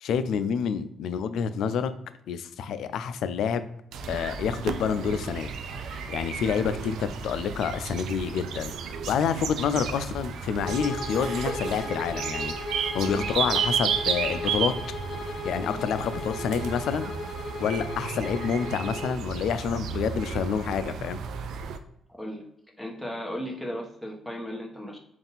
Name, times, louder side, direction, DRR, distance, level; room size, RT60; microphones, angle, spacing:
voice 1, 0.0-1.9 2.3-3.7 4.1-5.5 6.1-8.7 9.1-14.7 15.4-17.1 17.6-21.2, left 7 dB, 75° left, 12 dB, 0.3 m, -28 dB
sound 1, 3.9-21.8, right 6 dB, 75° right, 0.4 m, -33 dB
Bowed string instrument, 10.6-19.2, left 2 dB, 40° left, 1.1 m, -36 dB
voice 2, 13.0-13.5 15.6-15.8 22.2-22.4 22.8-25.0, equal, 5° right, 0 dB, 1.1 m, -36 dB
3.6 x 2.5 x 3.9 m, 0.77 s
cardioid pair, 90°, 0 cm